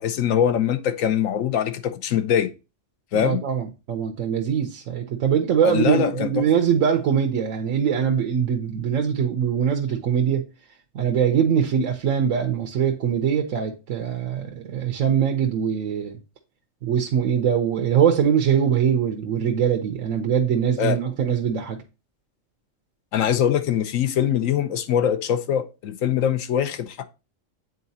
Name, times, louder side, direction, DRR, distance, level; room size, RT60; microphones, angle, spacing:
voice 1, 0.0-2.5 3.1-3.4 5.6-6.5 20.8-21.1 23.1-27.0, left 9 dB, 85° left, 1.1 m, -23 dB
voice 2, 3.1-10.4 10.9-16.2 16.8-21.8, right 8 dB, 85° right, 1.2 m, -22 dB
9.5 x 3.9 x 2.7 m
omnidirectional pair, 1.4 m